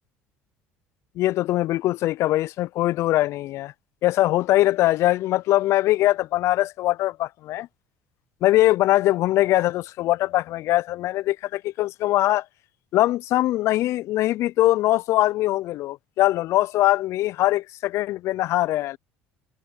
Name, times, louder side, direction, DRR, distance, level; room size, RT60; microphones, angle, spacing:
voice 1, 1.2-3.7 4.0-7.7 8.4-12.5 12.9-19.0, left 16 dB, 60° left, 0.5 m, -22 dB
hypercardioid pair, 70°, 5 cm